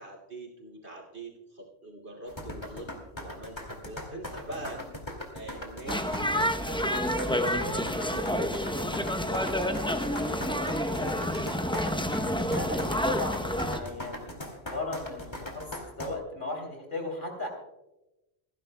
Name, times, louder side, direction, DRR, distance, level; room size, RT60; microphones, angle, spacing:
voice 1, 0.0-4.8 5.3-11.8, right 2 dB, 85° right, 1 dB, 2.9 m, -43 dB
sound 1, 2.3-16.1, left 1 dB, 25° left, 2.3 m, -39 dB
sound 2, 5.9-13.8, equal, 5° left, 0.6 m, -29 dB
voice 2, 12.5-17.5, left 2 dB, 50° left, 2 dB, 3.3 m, -37 dB
28.5 x 10.5 x 2.2 m, 0.98 s
omnidirectional pair, 1.1 m